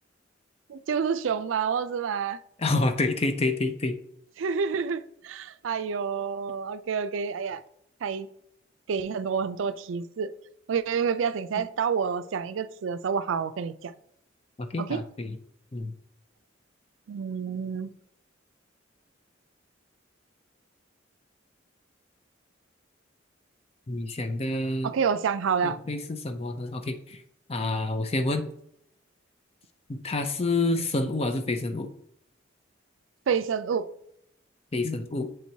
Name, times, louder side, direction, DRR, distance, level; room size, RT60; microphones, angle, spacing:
voice 1, 0.7-2.4 4.4-7.6 8.0-8.3 8.9-10.3 10.7-13.9 14.8-15.0 17.1-17.9 24.8-25.8 30.7-30.9 33.3-33.9, right 6 dB, 85° right, 0.4 m, -28 dB
voice 2, 2.6-3.9 14.7-15.4 15.7-15.9 23.9-24.9 25.6-27.2 27.5-28.5 29.9-31.9 34.7-35.3, left 2 dB, 30° left, 0.5 m, -28 dB
7.7 x 4.5 x 2.8 m
head